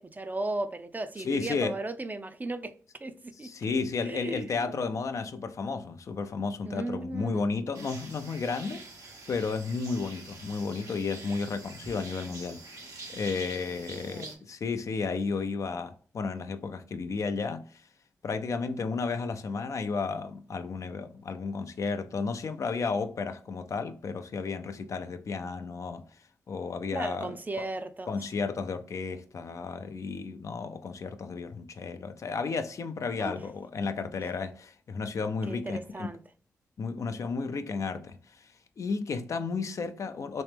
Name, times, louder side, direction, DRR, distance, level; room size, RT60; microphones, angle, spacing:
voice 1, 0.0-2.7 3.0-3.8 4.0-4.8 6.6-7.6 13.7-14.4 26.9-28.1 33.2-33.3 35.5-36.2, right 2 dB, 30° right, 0.5 m, -36 dB
voice 2, 1.2-1.8 3.4-12.9 13.1-17.8 18.2-26.0 26.5-27.7 28.1-36.1 36.8-40.4, left 4 dB, 60° left, 0.4 m, -33 dB
sound 1, 7.7-14.3, right 3 dB, 70° right, 0.9 m, -46 dB
3.1 x 2.8 x 3.3 m
supercardioid pair, 45°, 6 cm